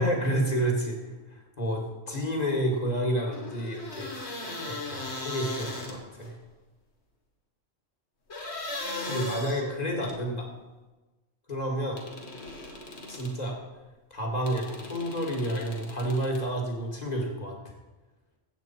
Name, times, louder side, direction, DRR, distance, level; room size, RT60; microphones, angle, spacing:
voice 1, 0.0-4.1 4.7-6.3 9.1-10.5 11.5-12.0 13.1-13.6 14.1-17.6, right 1 dB, 35° left, 0 dB, 2.2 m, -30 dB
sound 1, 3.3-6.3 8.3-10.2 12.0-13.4 14.5-16.4, left 2 dB, 65° left, 1.8 m, -38 dB
14.5 x 8.1 x 4.5 m, 1.1 s
omnidirectional pair, 1.2 m